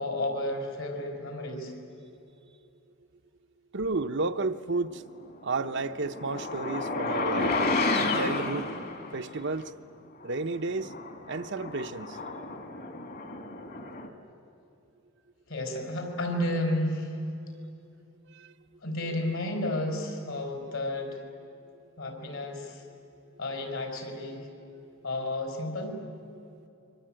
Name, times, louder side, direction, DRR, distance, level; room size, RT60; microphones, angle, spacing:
voice 1, 0.0-1.7 15.5-17.1 18.8-21.2 22.0-22.8 23.4-24.5 25.0-26.0, left 1 dB, 65° left, 5.0 m, -32 dB
voice 2, 3.7-5.0 5.4-7.6 8.1-8.7 9.1-9.7 10.2-10.9 11.3-12.2 18.3-18.5, right 3 dB, 55° right, 0.8 m, -32 dB
sound 1, 5.5-9.4 10.2-10.3 10.8-14.1, left 3 dB, 45° left, 2.3 m, -31 dB
28.0 x 24.0 x 9.0 m
head